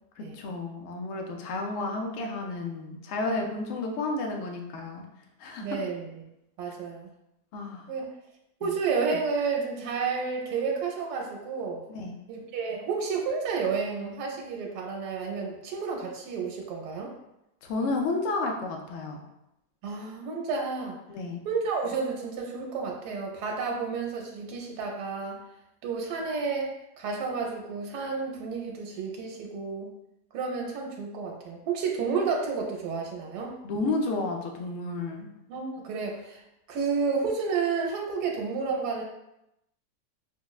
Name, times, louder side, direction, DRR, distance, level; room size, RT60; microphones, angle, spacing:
voice 1, 0.2-5.0 5.4-5.6 7.5-7.9 8.6-8.7 11.9-12.2 17.6-19.2 21.1-21.4 33.6-35.3, left 3 dB, 65° left, 2 dB, 0.8 m, -31 dB
voice 2, 5.6-6.1 6.6-7.1 7.9-8.1 8.6-11.8 12.3-17.1 19.8-21.0 21.4-25.4 25.8-26.7 27.0-29.9 30.3-33.5 35.5-36.4 36.7-39.0, right 5 dB, 85° right, 0 dB, 1.2 m, -31 dB
5.7 x 2.0 x 2.3 m, 0.86 s
omnidirectional pair, 1.7 m